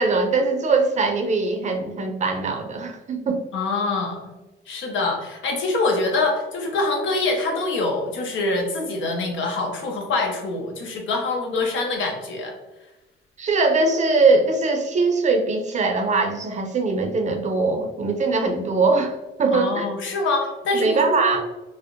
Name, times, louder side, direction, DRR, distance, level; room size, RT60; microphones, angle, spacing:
voice 1, 0.0-3.4 13.4-19.9 20.7-21.4, right 3 dB, 35° right, 4 dB, 0.4 m, -21 dB
voice 2, 3.5-4.3 4.7-12.5 19.5-21.4, left 3 dB, 75° left, 2 dB, 0.7 m, -25 dB
2.6 x 2.0 x 2.4 m, 1.1 s
cardioid pair, 90°, 20 cm